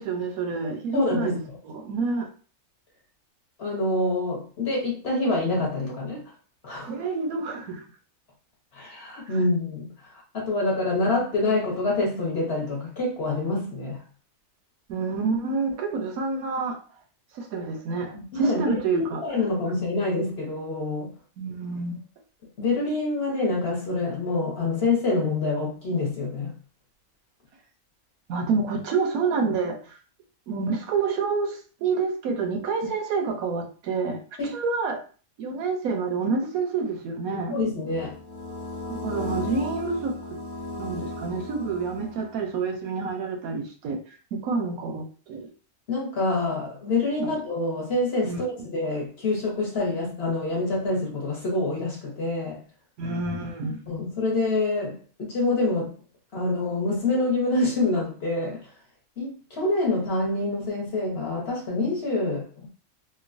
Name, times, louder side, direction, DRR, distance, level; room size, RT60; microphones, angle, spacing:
voice 1, 0.0-2.3 6.9-7.8 9.3-9.4 14.9-16.8 17.3-19.3 21.4-22.0 28.3-30.0 30.5-34.2 34.5-35.0 35.4-37.6 38.9-40.1 40.8-44.0 44.3-45.5 47.2-47.4 48.2-48.5 53.0-53.8, right 4 dB, 80° right, 1.0 m, -28 dB
voice 2, 0.9-1.6 3.6-6.2 6.6-7.0 8.7-9.9 10.3-14.0 18.1-21.1 22.6-26.5 34.4-34.6 37.5-38.1 45.9-48.5 48.7-52.6 53.9-55.9 56.3-58.6 59.2-62.7, left 2 dB, 50° left, 1.1 m, -26 dB
sound 1, 37.8-42.5, left 2 dB, 90° left, 1.2 m, -35 dB
3.0 x 2.2 x 2.4 m
omnidirectional pair, 1.5 m